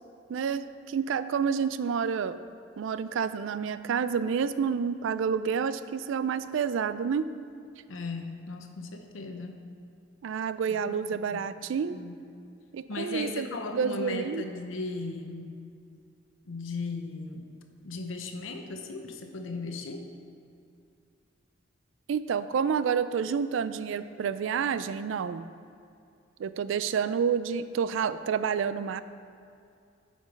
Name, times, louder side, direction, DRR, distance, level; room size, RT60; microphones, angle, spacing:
voice 1, 0.3-2.4 2.8-7.3 10.2-12.0 12.7-13.5 13.7-14.4 22.1-25.4 26.4-29.0, right 6 dB, 80° right, 14 dB, 0.3 m, -29 dB
voice 2, 7.9-9.6 10.7-11.5 11.9-12.2 12.9-15.5 16.5-17.5 17.8-20.1, left 3 dB, 90° left, 5 dB, 0.8 m, -37 dB
8.5 x 5.1 x 5.2 m, 2.5 s
head